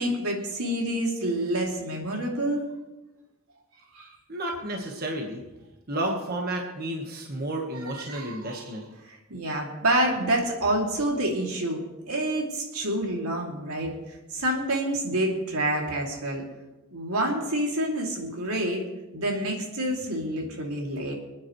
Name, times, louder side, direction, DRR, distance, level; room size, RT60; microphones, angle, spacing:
voice 1, 0.0-2.7 3.9-4.1 7.8-8.8 9.0-16.4 16.9-18.8 19.1-21.1, right 1 dB, 85° right, 0 dB, 2.6 m, -28 dB
voice 2, 4.3-5.4 5.9-8.8, right 1 dB, 45° right, 1 dB, 1.4 m, -31 dB
26.5 x 9.5 x 3.1 m, 1.1 s
head